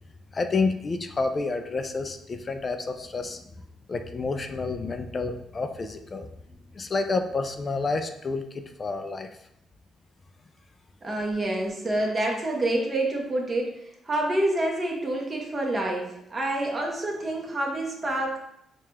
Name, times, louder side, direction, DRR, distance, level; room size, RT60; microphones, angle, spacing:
voice 1, 0.3-3.4 3.9-6.3 6.8-9.3, left 3 dB, 35° left, 6 dB, 0.3 m, -29 dB
voice 2, 11.0-18.4, right 1 dB, 25° right, -1 dB, 0.9 m, -27 dB
4.7 x 2.3 x 2.8 m, 0.78 s
cardioid pair, 90°, 0 cm